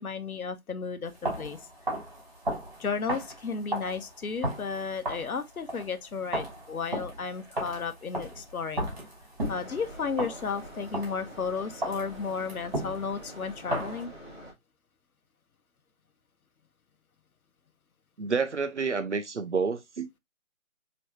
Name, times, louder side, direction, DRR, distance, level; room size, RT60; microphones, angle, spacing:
voice 1, 0.0-1.6 2.8-8.9 9.5-14.1, left 5 dB, 85° left, 0.9 m, -33 dB
sound 1, 1.1-11.4 11.8-14.1, right 1 dB, 30° right, 3.0 m, -35 dB
sound 2, 9.4-14.5, equal, 5° left, 1.8 m, -46 dB
voice 2, 18.2-20.1, right 5 dB, 55° right, 0.7 m, -29 dB
4.5 x 3.1 x 3.0 m
figure-of-eight pair, 170°, 42 cm